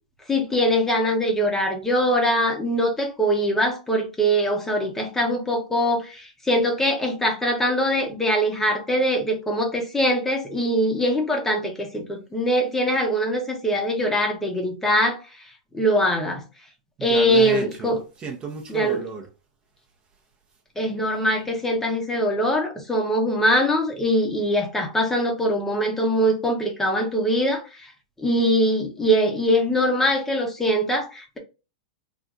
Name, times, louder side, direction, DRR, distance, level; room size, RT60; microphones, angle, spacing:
voice 1, 0.3-15.2 15.7-16.4 17.0-18.0 18.7-19.0 20.8-27.9 28.2-31.4, equal, 10° left, 0.8 m, -22 dB
voice 2, 17.0-19.3, right 5 dB, 25° right, 0.7 m, -33 dB
3.3 x 2.5 x 2.5 m
hypercardioid pair, 135°, 4 cm